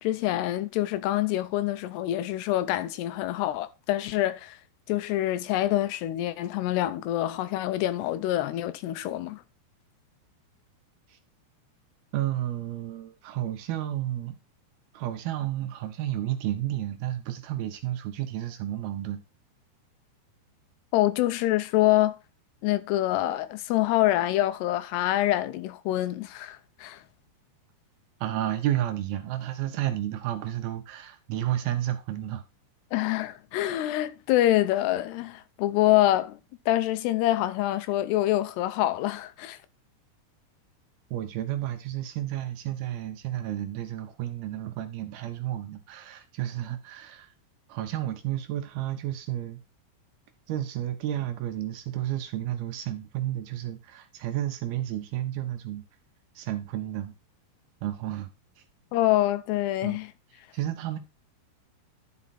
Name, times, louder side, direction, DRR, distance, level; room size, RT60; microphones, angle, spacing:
voice 1, 0.0-4.6 4.9-9.4 20.9-22.2 22.6-27.0 32.9-36.4 36.7-39.6 58.9-60.1, left 14 dB, 80° left, 2.7 m, -26 dB
voice 2, 12.1-14.4 14.9-19.2 28.2-32.4 41.1-47.3 47.7-49.6 50.5-55.8 56.4-57.1 57.8-58.3 59.8-60.0 60.5-61.0, right 13 dB, 75° right, 2.5 m, -31 dB
11.0 x 5.0 x 4.2 m
omnidirectional pair, 4.9 m